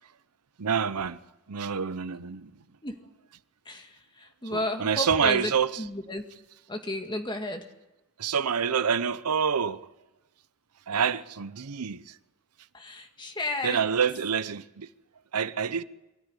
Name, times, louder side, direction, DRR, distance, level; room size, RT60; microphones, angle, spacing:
voice 1, 0.6-1.2 1.5-2.5 4.5-5.8 8.2-9.8 10.9-12.1 13.6-14.9 15.3-15.8, right 7 dB, 90° right, 0.8 m, -27 dB
voice 2, 4.2-5.5 5.8-6.2 6.7-7.6 12.7-13.8, left 1 dB, 20° left, 1.9 m, -32 dB
23.5 x 13.5 x 9.9 m
head